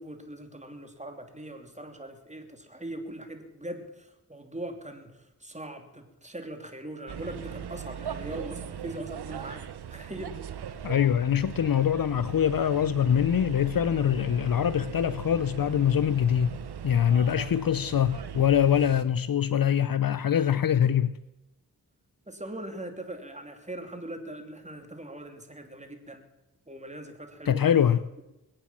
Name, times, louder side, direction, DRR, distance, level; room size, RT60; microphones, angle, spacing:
voice 1, 0.0-10.4 17.4-17.7 22.3-26.3 26.7-27.6, right 1 dB, 20° right, 3.1 m, -41 dB
sound 1, 7.1-19.0, right 8 dB, 90° right, 0.9 m, -39 dB
voice 2, 10.8-16.5 16.8-21.2 27.5-28.0, left 9 dB, 60° left, 0.6 m, -24 dB
22.0 x 8.8 x 7.5 m
cardioid pair, 45°, 38 cm